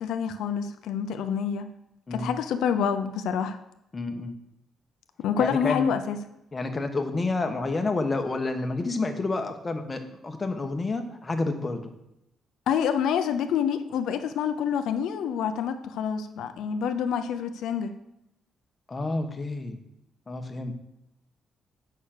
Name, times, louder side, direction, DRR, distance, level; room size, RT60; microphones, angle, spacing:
voice 1, 0.0-1.7 2.1-3.6 5.2-6.2 12.7-18.0, left 7 dB, 90° left, 8 dB, 0.6 m, -27 dB
voice 2, 3.9-4.4 5.4-5.9 6.5-11.9 18.9-19.8 20.3-20.7, left 3 dB, 25° left, 5 dB, 1.2 m, -29 dB
8.3 x 5.8 x 6.5 m, 0.85 s
cardioid pair, 130°, 0 cm